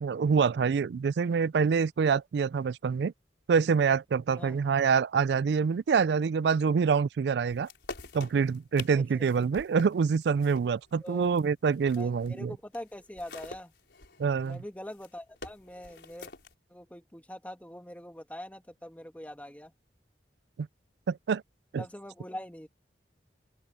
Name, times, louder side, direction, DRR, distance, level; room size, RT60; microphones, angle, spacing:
voice 1, 0.0-3.1 3.5-7.7 8.1-12.5 14.2-14.6 20.6-20.7 21.1-21.4 21.7-21.8, right 6 dB, 75° right, 0.3 m, -26 dB
sound 1, 7.5-12.4 12.7-16.5, left 3 dB, 90° left, 5.0 m, -46 dB
voice 2, 8.9-9.2 11.0-11.4 11.8-13.7 14.4-16.3 16.7-19.7 21.8-22.7, left 1 dB, 10° left, 2.1 m, -43 dB
open air
head